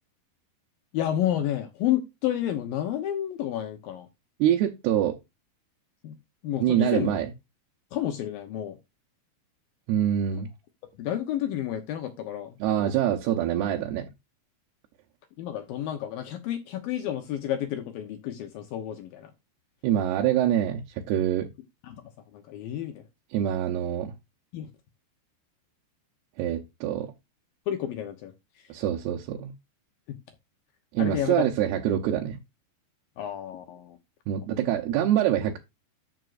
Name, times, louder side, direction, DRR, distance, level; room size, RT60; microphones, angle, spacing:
voice 1, 0.9-4.1 6.0-6.1 6.4-7.1 7.9-8.8 11.0-12.9 15.4-19.3 21.8-22.0 22.3-23.0 24.5-24.7 27.7-28.7 31.0-31.5 33.2-34.0, left 11 dB, 75° left, 2.1 m, -31 dB
voice 2, 4.4-5.2 6.6-7.3 9.9-10.5 12.6-14.1 19.8-21.5 23.3-24.1 26.4-27.1 28.7-29.5 30.9-32.4 34.3-35.6, right 11 dB, 75° right, 2.7 m, -25 dB
12.5 x 6.2 x 2.5 m
omnidirectional pair, 5.2 m